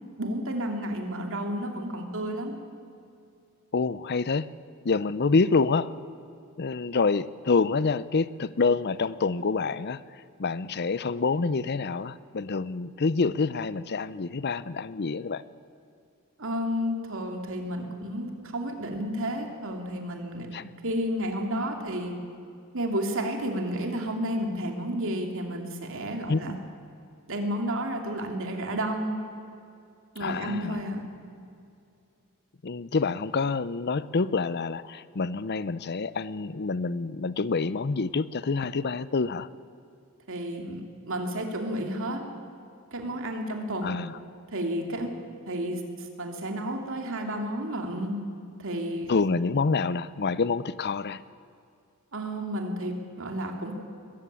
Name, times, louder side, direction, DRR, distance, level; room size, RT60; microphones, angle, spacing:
voice 1, 0.2-2.5 16.4-20.5 20.8-22.1 22.7-26.6 27.3-29.2 30.1-31.1 40.3-42.2 42.9-44.0 44.5-45.1 45.5-48.2 48.6-49.1 52.1-53.7, equal, 60° right, 4 dB, 2.8 m, -31 dB
voice 2, 3.7-4.5 4.8-5.9 6.6-10.0 10.4-15.4 20.5-20.8 26.3-26.6 30.2-30.8 32.6-39.5 43.8-44.2 49.1-51.2, left 4 dB, 50° left, 17 dB, 0.6 m, -27 dB
21.5 x 14.5 x 8.8 m, 2.5 s
head